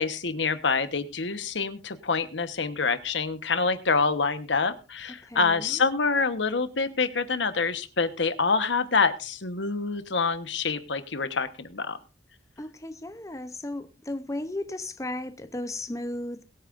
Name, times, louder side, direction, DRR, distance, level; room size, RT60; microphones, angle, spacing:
voice 1, 0.0-12.0, left 4 dB, 75° left, 1.2 m, -26 dB
voice 2, 5.3-5.8 12.6-16.4, left 1 dB, 15° left, 0.7 m, -35 dB
22.0 x 8.9 x 2.6 m
head